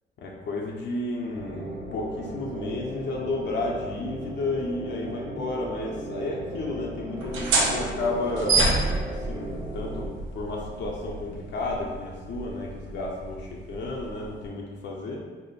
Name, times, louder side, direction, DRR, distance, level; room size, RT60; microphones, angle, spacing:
voice 1, 0.2-15.2, left 2 dB, 65° left, -2 dB, 0.7 m, -32 dB
sound 1, 1.3-10.1, right 1 dB, 25° right, 0.7 m, -37 dB
sound 2, 7.2-14.5, right 3 dB, 90° right, 0.7 m, -29 dB
3.6 x 2.0 x 4.0 m, 1.4 s
cardioid pair, 90°, 20 cm